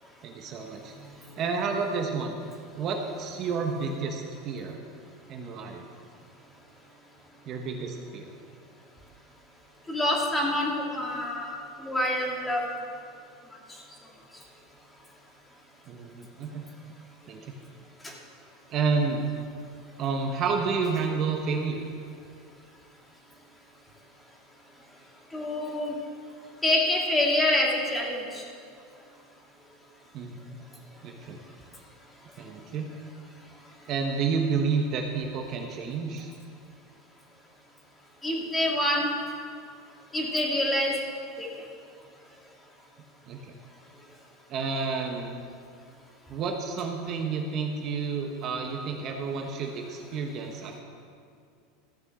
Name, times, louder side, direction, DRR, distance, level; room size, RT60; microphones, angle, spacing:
voice 1, 0.2-0.9 1.4-2.3 2.8-4.8 5.3-5.8 7.4-8.3 15.9-16.6 17.3-17.5 18.7-19.2 20.0-21.8 30.1-30.6 31.0-31.4 32.4-32.9 33.9-36.3 43.3-43.5 44.5-45.4 46.3-50.8, right 5 dB, 40° right, 3 dB, 1.2 m, -30 dB
voice 2, 9.9-12.6 25.3-25.9 26.6-28.4 38.2-39.1 40.1-40.9 41.4-41.5, left 1 dB, 10° left, -1 dB, 2.0 m, -26 dB
14.5 x 6.3 x 7.6 m, 2.3 s
supercardioid pair, 135°, 0 cm